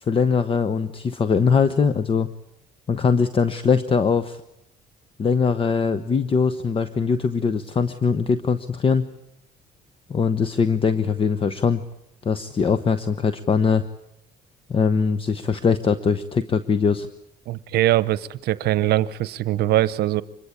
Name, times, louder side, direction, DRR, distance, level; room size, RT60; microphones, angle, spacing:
voice 1, 0.0-2.3 2.9-4.4 5.2-9.1 10.1-11.8 12.2-13.8 14.7-17.1, left 5 dB, 30° left, 12 dB, 1.0 m, -21 dB
voice 2, 17.5-20.2, right 14 dB, 70° right, 17 dB, 0.9 m, -22 dB
25.0 x 21.0 x 8.7 m, 0.80 s
cardioid pair, 110°, 17 cm